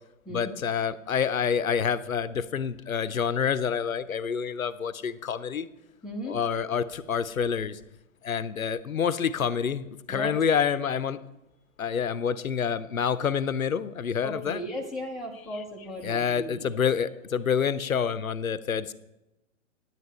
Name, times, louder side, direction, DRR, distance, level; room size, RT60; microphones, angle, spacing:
voice 1, 0.3-5.7 6.2-7.8 8.2-11.2 11.8-14.6 15.5-15.6 16.0-18.9, left 7 dB, 75° left, 15 dB, 0.7 m, -27 dB
voice 2, 6.0-6.4 10.1-10.3 14.2-16.7, equal, ahead, -4 dB, 0.6 m, -36 dB
9.8 x 9.3 x 4.4 m, 0.92 s
figure-of-eight pair, 120°, 41 cm